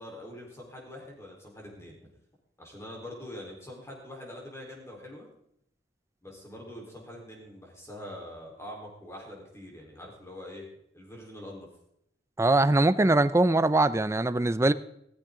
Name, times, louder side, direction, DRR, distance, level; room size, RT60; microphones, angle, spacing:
voice 1, 0.0-2.1 2.6-5.3 6.2-10.6 10.9-11.7, left 1 dB, 15° left, -1 dB, 3.9 m, -44 dB
voice 2, 12.4-14.7, right 2 dB, 15° right, 13 dB, 0.4 m, -22 dB
16.5 x 14.0 x 3.8 m, 0.74 s
head